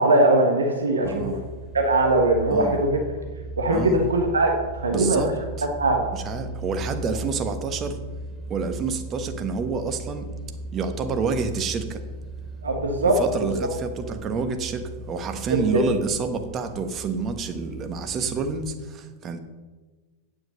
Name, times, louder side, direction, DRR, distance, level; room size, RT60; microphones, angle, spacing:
voice 1, 0.0-1.4 1.7-3.0 3.6-5.3 5.8-6.0 12.6-13.7 15.5-15.6, right 2 dB, 70° right, 3 dB, 1.3 m, -21 dB
sound 1, 1.0-18.7, right 2 dB, ahead, 2.3 m, -37 dB
voice 2, 1.0-1.4 2.5-2.8 3.7-4.0 4.9-5.3 5.6-5.7 6.1-8.0 8.5-10.3 10.7-12.0 13.2-19.4, right 5 dB, 30° right, 7 dB, 1.2 m, -28 dB
9.4 x 7.8 x 6.5 m, 1.3 s
figure-of-eight pair, 90°, 0 cm